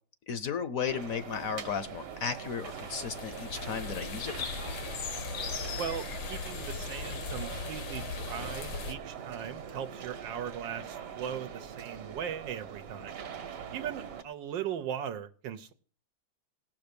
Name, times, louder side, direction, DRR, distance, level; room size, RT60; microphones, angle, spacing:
voice 1, 0.3-4.3, left 6 dB, 60° left, 12 dB, 1.0 m, -34 dB
sound 1, 0.8-14.2, right 7 dB, 65° right, 1.6 m, -43 dB
sound 2, 1.9-8.9, left 6 dB, 80° left, 1.8 m, -39 dB
voice 2, 5.8-13.2 13.7-15.7, right 9 dB, 80° right, 8 dB, 1.5 m, -38 dB
17.5 x 6.1 x 6.8 m, 0.43 s
omnidirectional pair, 2.0 m